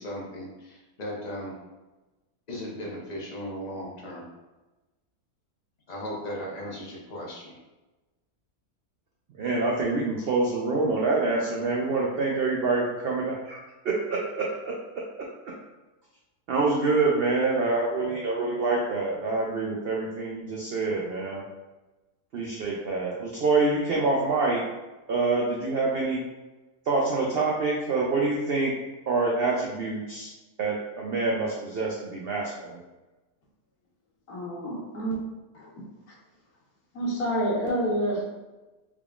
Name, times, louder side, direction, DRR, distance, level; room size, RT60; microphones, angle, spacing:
voice 1, 0.0-1.6 2.5-4.2 5.9-7.6, equal, 35° left, -4 dB, 0.7 m, -37 dB
voice 2, 9.4-15.0 16.5-21.4 22.3-24.6 25.1-26.2 26.9-28.7 29.1-30.3 30.6-32.8, right 3 dB, 75° right, -2 dB, 0.5 m, -26 dB
voice 3, 34.3-35.1 35.5-35.8 36.9-38.3, equal, 75° left, -5 dB, 1.6 m, -28 dB
3.5 x 3.5 x 2.4 m, 1.1 s
omnidirectional pair, 1.6 m